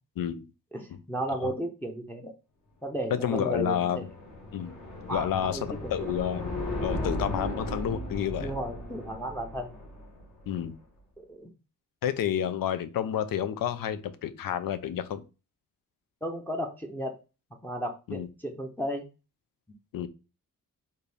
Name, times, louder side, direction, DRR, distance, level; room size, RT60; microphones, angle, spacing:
voice 1, 0.7-2.3 2.8-4.1 5.1-6.1 8.4-9.8 11.3-11.5 16.2-17.2 17.6-19.1, right 1 dB, 5° left, 2 dB, 0.6 m, -34 dB
voice 2, 3.1-4.1 4.5-4.7 5.1-6.5 6.8-8.5 10.5-10.7 12.0-15.2 18.1-18.3 19.9-20.1, left 9 dB, 70° left, 12 dB, 0.6 m, -30 dB
sound 1, 3.5-10.5, left 1 dB, 55° left, 1.7 m, -36 dB
4.3 x 2.6 x 3.3 m, 0.31 s
cardioid pair, 100°, 35 cm